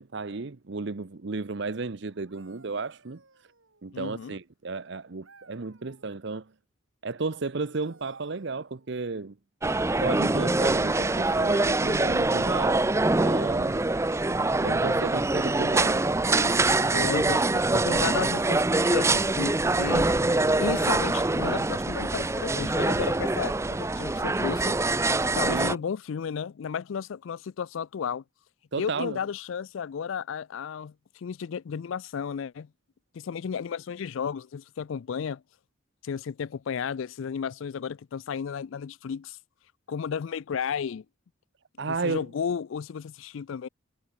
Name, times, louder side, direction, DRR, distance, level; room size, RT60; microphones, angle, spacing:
voice 1, 0.0-3.2 3.8-6.4 7.0-9.3 10.0-13.8 14.6-16.6 16.9-17.1 17.9-18.1 25.5-25.8 28.7-29.2 41.8-42.3, right 3 dB, 55° right, 0.7 m, -33 dB
sound 1, 2.1-4.1 5.2-6.2 7.6-9.2 11.3-11.9 12.7-13.2 13.8-15.6 17.5-17.7, right 4 dB, 75° right, 6.5 m, -61 dB
voice 2, 3.9-4.3 16.9-20.1 20.6-24.8 25.3-28.2 28.8-32.7 33.1-35.4 36.0-39.4 39.9-41.0 41.8-43.7, left 7 dB, 70° left, 0.4 m, -33 dB
sound 2, 9.6-25.8, right 2 dB, 15° right, 0.5 m, -24 dB
head